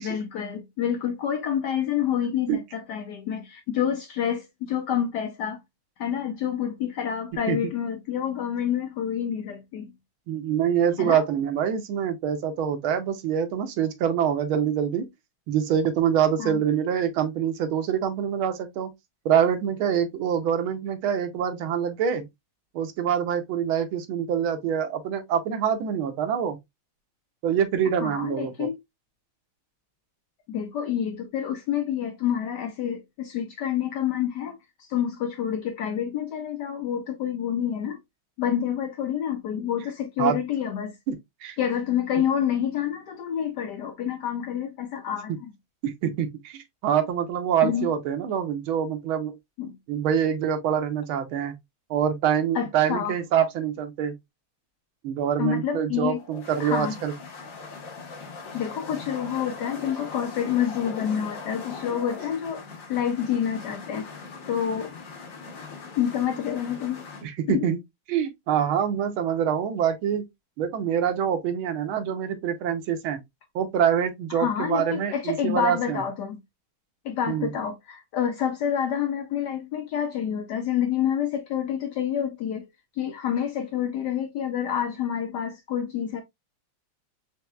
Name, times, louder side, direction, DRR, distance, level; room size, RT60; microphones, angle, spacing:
voice 1, 0.0-5.6 6.0-9.9 11.0-11.2 16.4-16.6 28.0-28.7 30.5-38.0 38.4-41.0 41.6-45.5 47.6-47.9 49.6-49.8 52.5-53.1 55.4-56.2 56.6-56.9 58.5-62.6 62.9-64.1 64.5-64.9 66.0-67.0 67.5-67.7 74.3-76.4 77.0-82.7 83.0-86.2, left 9 dB, 75° left, 1.0 m, -28 dB
voice 2, 10.3-15.1 15.5-18.9 19.2-22.3 22.7-26.6 27.4-28.7 40.2-40.4 41.1-41.6 45.8-49.3 49.9-51.5 51.9-54.1 55.0-57.1 67.2-67.8 68.1-70.3 70.6-73.2 73.5-76.0 77.3-77.5, right 8 dB, 80° right, 1.6 m, -25 dB
sound 1, 56.1-67.2, left 4 dB, 50° left, 1.2 m, -40 dB
4.5 x 3.4 x 2.2 m
omnidirectional pair, 2.3 m